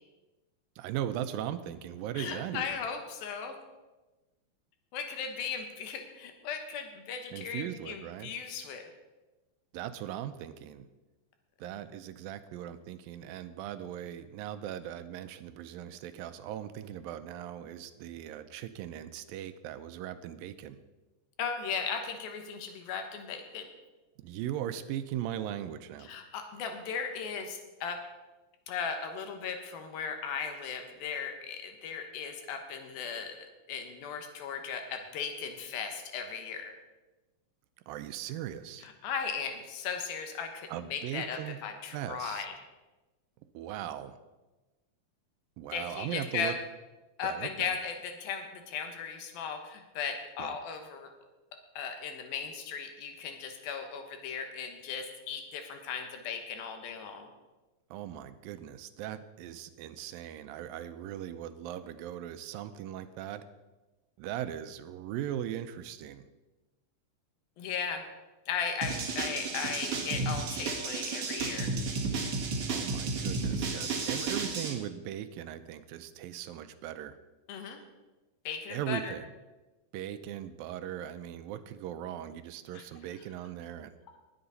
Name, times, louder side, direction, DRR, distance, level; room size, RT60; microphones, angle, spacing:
voice 1, 0.8-2.8 7.3-8.3 9.7-10.9 11.6-20.8 24.2-26.1 37.9-38.9 40.7-41.6 41.9-42.5 43.5-44.2 45.6-46.5 47.2-47.7 50.4-50.6 57.9-63.4 64.2-66.3 72.7-77.2 78.7-79.3 79.9-83.9, right 11 dB, 85° right, 11 dB, 2.4 m, -39 dB
voice 2, 2.2-3.6 4.9-8.8 21.4-23.7 26.0-28.0 28.7-36.7 38.8-42.5 45.7-46.5 47.2-51.1 51.8-57.3 67.6-68.0 68.5-71.7 77.5-77.8 78.4-79.1 82.7-82.8, left 6 dB, 90° left, 5 dB, 3.1 m, -37 dB
sound 1, 68.8-74.7, right 4 dB, 50° right, 2.0 m, -33 dB
20.0 x 7.9 x 4.1 m, 1.1 s
omnidirectional pair, 4.1 m